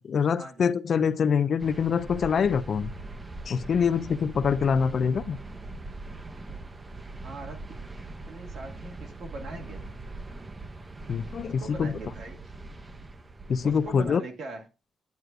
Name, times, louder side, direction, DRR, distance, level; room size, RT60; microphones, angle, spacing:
voice 1, 0.1-2.9 3.5-5.4 11.1-11.9 13.5-14.2, left 6 dB, 50° left, 0.5 m, -25 dB
sound 1, 1.6-14.1, right 2 dB, 20° right, 0.5 m, -41 dB
voice 2, 7.2-7.7 8.3-9.9 11.4-12.5 13.6-14.7, right 2 dB, 65° right, 1.7 m, -41 dB
9.4 x 7.8 x 2.5 m
wide cardioid pair, 155°, 0 cm